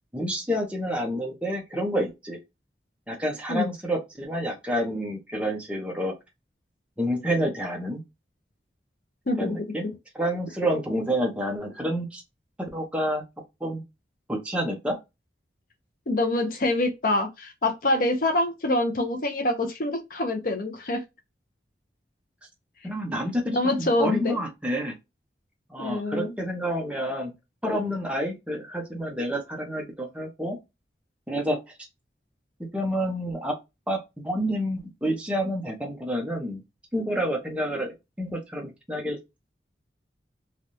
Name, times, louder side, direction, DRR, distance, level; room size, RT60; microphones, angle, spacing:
voice 1, 0.1-2.4 3.1-6.1 7.0-8.0 9.4-9.9 10.1-12.2 12.7-13.2 13.6-13.8 14.3-15.0 22.8-24.9 25.7-27.3 27.6-30.6 31.3-31.6 32.7-33.5 33.9-34.0 34.2-36.6 36.9-39.2, equal, 5° right, 0.8 m, -28 dB
voice 2, 16.1-21.0 23.5-24.4 25.8-26.4, left 2 dB, 50° left, 0.6 m, -25 dB
3.3 x 2.4 x 2.7 m
head